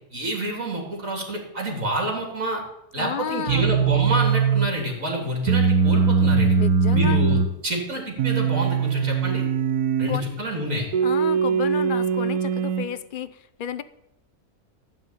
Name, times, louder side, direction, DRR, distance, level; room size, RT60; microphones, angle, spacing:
voice 1, 0.1-2.6 2.9-6.6 6.9-9.5 10.0-10.9, right 1 dB, 60° right, 1 dB, 3.6 m, -28 dB
voice 2, 3.0-3.7 6.6-7.4 10.1-10.3 11.0-13.8, left 8 dB, 55° left, 13 dB, 0.5 m, -31 dB
sound 1, 3.5-4.8 5.5-7.5 8.2-10.2 10.9-12.9, right 6 dB, 80° right, 1.4 m, -21 dB
15.5 x 5.5 x 9.2 m, 0.83 s
omnidirectional pair, 1.6 m